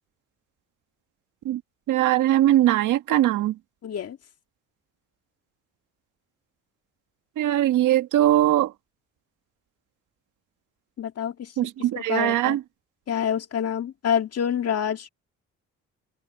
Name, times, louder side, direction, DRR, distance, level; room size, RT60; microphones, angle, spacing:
voice 1, 1.9-3.5 7.4-8.7 11.6-12.6, right 13 dB, 85° right, 1.6 m, -21 dB
voice 2, 3.8-4.2 11.0-11.5 12.0-12.6 13.1-15.1, left 8 dB, 55° left, 2.0 m, -27 dB
cardioid pair, 90°, 30 cm